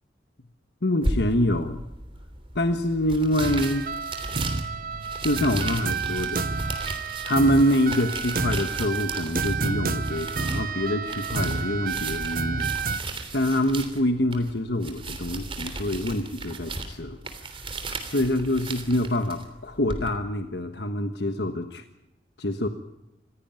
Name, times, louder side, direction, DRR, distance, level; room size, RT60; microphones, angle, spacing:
voice 1, 0.8-1.8 2.5-3.8 5.2-6.7 7.2-12.9 13.3-17.2 18.1-21.8 22.4-22.7, left 1 dB, 60° left, 7 dB, 1.4 m, -25 dB
sound 1, 1.0-20.1, right 2 dB, 30° right, 3.2 m, -36 dB
sound 2, 3.4-13.0, right 4 dB, 50° right, 1.0 m, -30 dB
25.5 x 16.5 x 9.1 m, 0.92 s
head